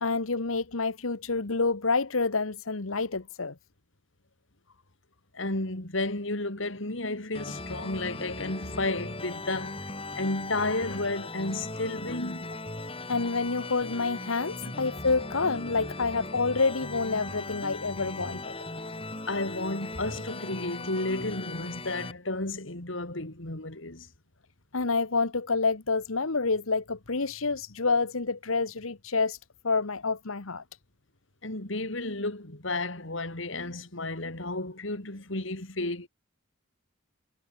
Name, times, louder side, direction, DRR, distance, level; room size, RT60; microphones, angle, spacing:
voice 1, 0.0-3.5 13.1-18.5 24.7-29.4 29.6-30.6, left 4 dB, 85° left, 1.3 m, -28 dB
voice 2, 5.3-9.8 10.1-12.5 14.6-14.7 19.3-24.1 31.4-36.1, left 2 dB, 70° left, 3.3 m, -32 dB
sound 1, 7.3-22.1, left 2 dB, 25° left, 4.3 m, -38 dB
head